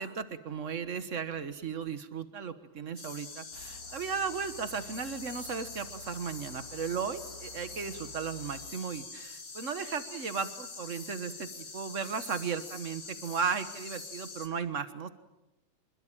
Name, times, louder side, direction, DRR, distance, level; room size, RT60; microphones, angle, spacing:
voice 1, 0.0-15.1, right 6 dB, 55° right, 10 dB, 0.8 m, -36 dB
sound 1, 3.0-14.5, left 4 dB, 40° left, 3.1 m, -45 dB
sound 2, 3.5-8.7, left 1 dB, 40° right, 2.1 m, -52 dB
26.0 x 22.0 x 8.9 m, 0.91 s
omnidirectional pair, 3.4 m